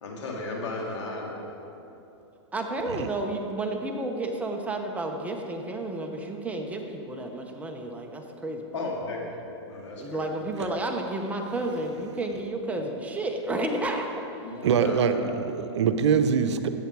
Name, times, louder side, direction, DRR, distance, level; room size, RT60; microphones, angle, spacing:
voice 1, 0.0-1.4 8.7-10.3 12.7-12.8 14.4-15.4, left 2 dB, 80° left, -1 dB, 2.7 m, -35 dB
voice 2, 2.5-8.9 10.0-14.1, right 2 dB, 10° right, 2 dB, 1.0 m, -31 dB
voice 3, 14.6-16.7, right 6 dB, 75° right, 9 dB, 0.8 m, -23 dB
14.0 x 8.8 x 4.7 m, 3.0 s
hypercardioid pair, 135°, 15 cm